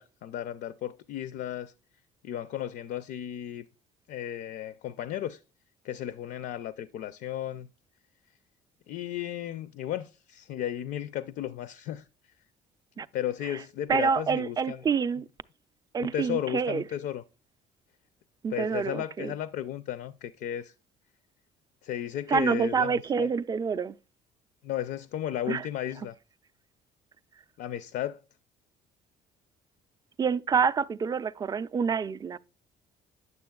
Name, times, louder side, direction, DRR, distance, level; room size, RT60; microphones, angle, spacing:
voice 1, 0.0-1.7 2.2-3.6 4.1-5.4 5.8-7.7 8.9-12.0 13.1-14.8 16.0-17.2 18.5-20.7 21.8-23.3 24.6-26.2 27.6-28.2, left 11 dB, 70° left, 0.4 m, -34 dB
voice 2, 13.9-15.3 15.9-16.8 18.4-19.3 22.3-24.0 25.5-25.7 30.2-32.4, right 6 dB, 25° right, 0.3 m, -27 dB
9.5 x 6.9 x 2.3 m
cardioid pair, 110°, 17 cm